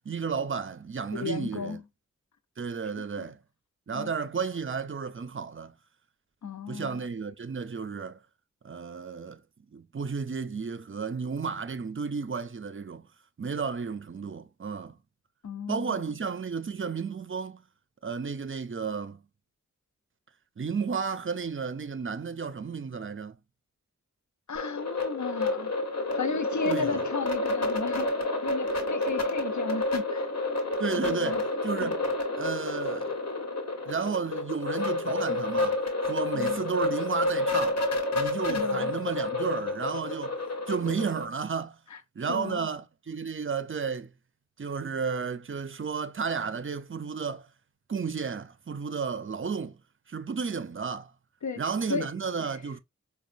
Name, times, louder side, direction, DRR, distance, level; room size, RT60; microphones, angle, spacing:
voice 1, 0.1-1.8 2.6-3.4 3.9-5.8 6.7-8.2 8.6-9.4 9.7-13.1 13.4-15.0 15.7-17.6 18.0-19.2 20.6-23.4 26.7-27.0 30.8-32.0 32.4-33.1 33.9-37.8 38.1-40.4 40.7-41.8 42.2-44.1 44.6-47.5 47.9-49.8 50.1-51.1 51.6-52.8, right 5 dB, 45° right, 0.5 m, -32 dB
voice 2, 1.1-1.8 3.2-3.3 3.9-4.1 6.4-7.0 15.4-16.0 24.5-25.8 26.1-30.3 31.0-31.4 31.8-31.9 36.3-36.6 38.5-38.9 41.9-42.0 42.3-42.7 51.4-51.6 51.9-52.6, left 5 dB, 75° left, 0.6 m, -34 dB
sound 1, 24.6-41.3, left 2 dB, 60° left, 1.3 m, -29 dB
5.0 x 2.3 x 2.5 m
wide cardioid pair, 40°, 29 cm